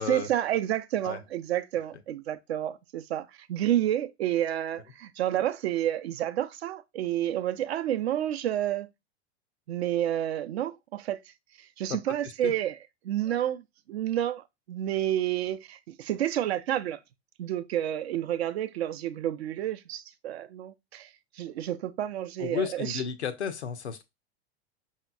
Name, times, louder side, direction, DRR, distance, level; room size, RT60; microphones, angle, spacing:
voice 1, 0.0-8.9 9.7-11.2 11.6-12.8 13.0-13.6 13.9-17.0 17.4-21.1 21.3-23.0, right 12 dB, 75° right, 0.5 m, -30 dB
voice 2, 22.4-24.0, left 7 dB, 90° left, 0.6 m, -33 dB
5.2 x 2.8 x 2.3 m
hypercardioid pair, 95°, 32 cm